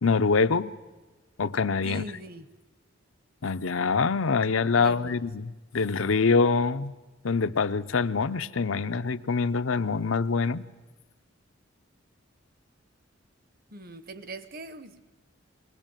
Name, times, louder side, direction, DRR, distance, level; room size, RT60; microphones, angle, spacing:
voice 1, 0.0-0.7 1.4-2.0 3.4-6.9 7.2-10.6, left 4 dB, 85° left, 0.7 m, -25 dB
voice 2, 1.8-2.5 4.7-5.2 13.7-15.0, right 2 dB, 45° right, 1.1 m, -41 dB
22.5 x 18.5 x 9.1 m
head